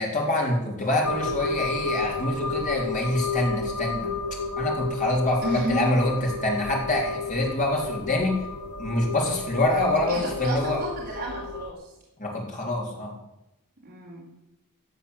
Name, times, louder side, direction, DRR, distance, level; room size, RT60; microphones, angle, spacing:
voice 1, 0.0-4.1 4.6-8.4 8.8-10.8 12.2-13.1, left 1 dB, 35° left, -1 dB, 3.9 m, -25 dB
sound 1, 1.0-11.7, left 4 dB, 80° left, 1.3 m, -32 dB
voice 2, 5.4-5.8 10.1-11.8 13.8-14.3, right 2 dB, 40° right, -5 dB, 4.5 m, -31 dB
15.0 x 7.9 x 8.2 m, 0.92 s
head